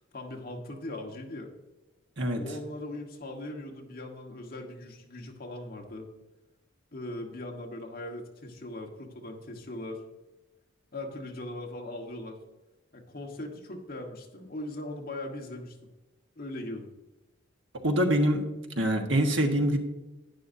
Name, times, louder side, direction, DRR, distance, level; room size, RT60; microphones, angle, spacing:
voice 1, 0.0-1.5 2.4-6.1 6.9-10.0 10.9-12.4 12.9-15.8 16.4-16.9, left 1 dB, 50° left, 1 dB, 1.5 m, -39 dB
voice 2, 17.8-18.4 18.8-19.8, right 1 dB, 65° right, 3 dB, 1.5 m, -24 dB
11.5 x 10.0 x 2.7 m, 1.1 s
head